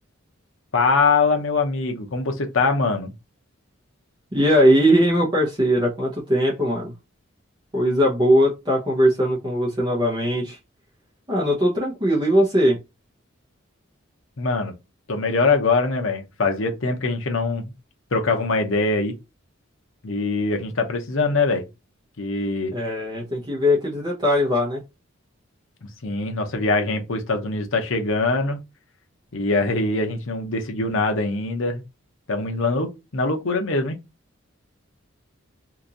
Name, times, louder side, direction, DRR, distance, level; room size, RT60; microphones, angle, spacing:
voice 1, 0.7-3.1 14.4-14.7 15.1-17.7 18.1-19.2 20.0-21.6 22.2-22.7 26.0-28.6 29.3-31.8 32.3-34.0, left 3 dB, 75° left, 0.8 m, -23 dB
voice 2, 4.3-6.9 7.7-10.6 11.3-12.8 22.7-24.8, equal, 20° right, 0.8 m, -20 dB
2.9 x 2.6 x 3.7 m
head